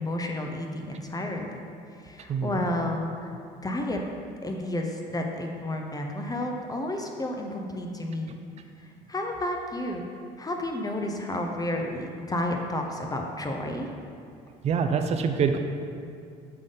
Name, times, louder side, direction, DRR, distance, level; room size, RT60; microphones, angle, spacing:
voice 1, 0.0-1.6 2.0-4.0 4.4-8.4 8.8-10.0 10.4-13.9, left 1 dB, 20° left, 2 dB, 0.6 m, -31 dB
voice 2, 2.3-2.6 14.6-15.6, right 6 dB, 40° right, 7 dB, 0.4 m, -25 dB
7.6 x 3.7 x 3.8 m, 2.4 s
supercardioid pair, 85°, 18 cm